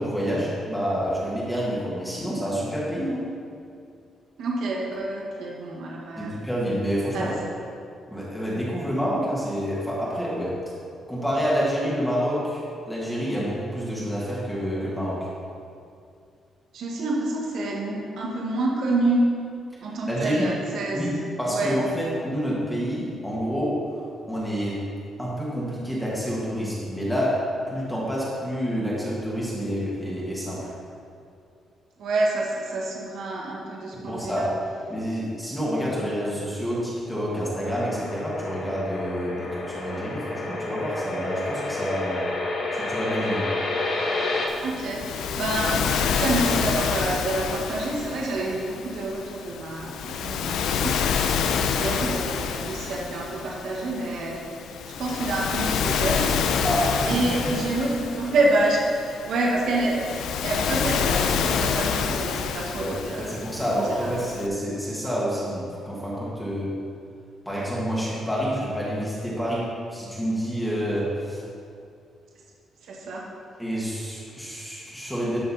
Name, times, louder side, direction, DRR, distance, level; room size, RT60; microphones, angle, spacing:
voice 1, 0.0-3.3 6.2-7.3 8.1-10.6 11.1-15.3 20.1-20.5 20.9-24.8 25.2-30.7 33.9-34.5 34.9-42.2 42.7-43.5 56.6-57.6 62.8-66.8 67.5-71.4 73.6-75.4, equal, 5° left, -7 dB, 1.9 m, -28 dB
voice 2, 4.4-6.3 7.1-7.3 16.7-19.2 19.8-21.0 21.5-21.8 32.0-34.5 44.6-50.9 51.7-54.4 55.0-56.3 57.0-60.0 60.4-63.3 63.7-64.2 72.8-73.2, right 2 dB, 70° right, -3 dB, 1.8 m, -27 dB
sound 1, 37.6-44.5, left 2 dB, 65° left, 1.5 m, -30 dB
Waves surf, 44.5-64.5, left 7 dB, 90° left, 0.6 m, -28 dB
12.0 x 6.4 x 4.3 m, 2.4 s
cardioid pair, 160°, 0 cm